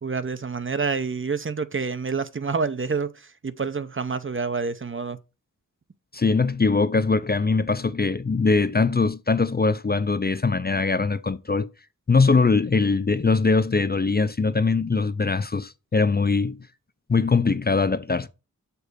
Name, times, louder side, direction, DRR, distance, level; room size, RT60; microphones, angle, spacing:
voice 1, 0.0-5.2, right 5 dB, 40° right, 0.7 m, -28 dB
voice 2, 6.1-11.7 12.1-16.6 17.1-18.3, left 4 dB, 30° left, 0.5 m, -22 dB
6.9 x 4.1 x 6.6 m
wide cardioid pair, 80°, 31 cm